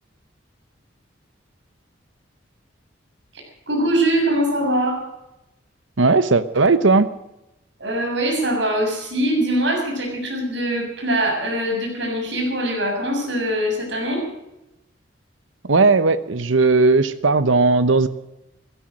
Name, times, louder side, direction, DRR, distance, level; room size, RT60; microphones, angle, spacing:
voice 1, 3.7-5.0 7.8-14.2, right 1 dB, 70° right, 1 dB, 6.9 m, -22 dB
voice 2, 6.0-7.1 15.7-18.1, right 3 dB, 85° right, 13 dB, 1.0 m, -16 dB
16.5 x 13.0 x 6.5 m, 0.90 s
head